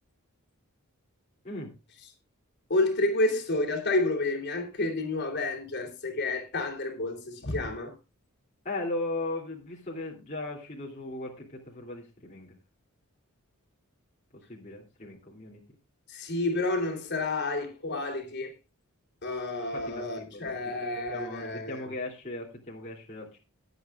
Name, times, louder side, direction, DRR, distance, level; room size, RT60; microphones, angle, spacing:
voice 1, 2.7-7.9 16.1-18.5 19.2-21.8, left 2 dB, 50° left, 3.2 m, -30 dB
voice 2, 8.6-12.5 14.3-15.6 19.7-23.4, left 2 dB, 35° left, 2.8 m, -38 dB
21.0 x 8.1 x 2.4 m
head